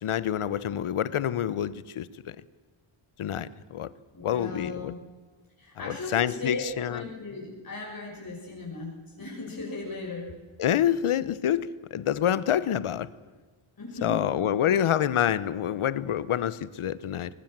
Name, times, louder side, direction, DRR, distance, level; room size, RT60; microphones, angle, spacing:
voice 1, 0.0-2.4 3.2-3.9 4.2-4.9 5.8-7.0 10.6-13.1 14.0-17.3, left 10 dB, 80° left, 1.1 m, -27 dB
voice 2, 4.1-5.0 5.6-10.3 13.8-14.4, left 2 dB, 45° left, 6.2 m, -37 dB
23.5 x 20.0 x 7.6 m
cardioid pair, 85°, 49 cm